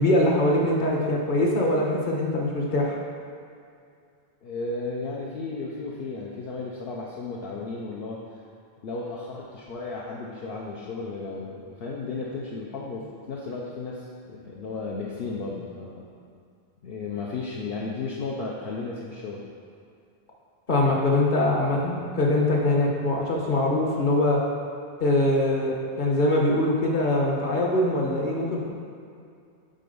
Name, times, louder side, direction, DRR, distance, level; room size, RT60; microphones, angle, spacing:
voice 1, 0.0-3.0 20.7-24.4 25.0-28.7, left 1 dB, 50° left, -3 dB, 1.3 m, -23 dB
voice 2, 4.4-8.2 8.8-16.1 16.8-19.4, left 3 dB, 65° left, -3 dB, 0.9 m, -34 dB
7.7 x 4.3 x 5.4 m, 2.4 s
omnidirectional pair, 1.1 m